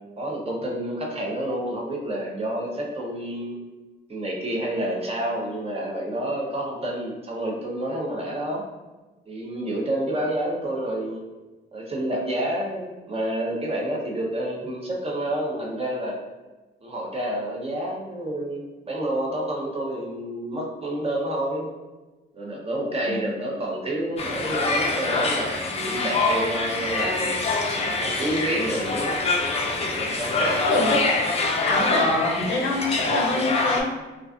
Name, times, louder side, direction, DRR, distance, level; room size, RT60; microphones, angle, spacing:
voice 1, 0.2-3.6 4.1-8.6 9.3-11.2 11.7-16.2 16.8-21.7 22.3-27.5 28.0-29.1 30.0-30.7, right 1 dB, 30° right, -1 dB, 0.6 m, -29 dB
sound 1, 24.2-33.8, left 3 dB, 30° left, 0.4 m, -25 dB
voice 2, 31.7-33.9, left 2 dB, 80° left, 0 dB, 0.5 m, -24 dB
2.4 x 2.3 x 2.4 m, 1.2 s
cardioid pair, 90°, 20 cm